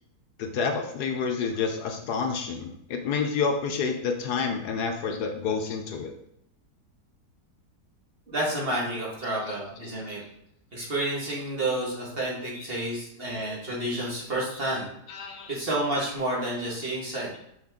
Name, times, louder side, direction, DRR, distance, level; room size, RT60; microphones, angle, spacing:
voice 1, 0.4-6.1 15.1-15.5, left 5 dB, 75° left, 4 dB, 1.3 m, -29 dB
voice 2, 8.3-10.2 10.7-14.9 15.5-17.4, right 1 dB, 35° right, -4 dB, 1.8 m, -30 dB
6.2 x 4.4 x 3.6 m, 0.76 s
omnidirectional pair, 1.8 m